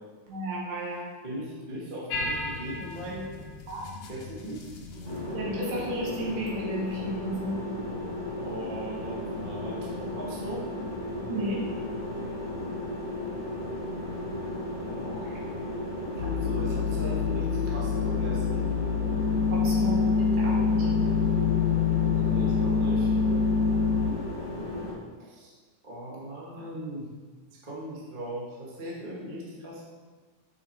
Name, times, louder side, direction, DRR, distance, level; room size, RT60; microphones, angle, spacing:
voice 1, 0.3-1.1 3.7-3.8 5.3-7.6 11.3-11.6 19.5-21.2, right 1 dB, 75° right, -4 dB, 3.1 m, -33 dB
voice 2, 1.2-3.4 4.1-4.6 8.4-10.6 14.8-15.4 16.1-18.6 22.2-23.1 25.2-25.5 25.8-27.1 27.5-29.8, right 1 dB, 50° right, -4 dB, 0.6 m, -39 dB
sound 1, 2.1-5.4, left 2 dB, 65° left, 1.8 m, -36 dB
sound 2, 5.0-24.9, left 1 dB, 25° left, 0.5 m, -35 dB
sound 3, 16.2-24.1, left 5 dB, 80° left, 2.1 m, -25 dB
6.7 x 5.8 x 4.5 m, 1.4 s
omnidirectional pair, 3.7 m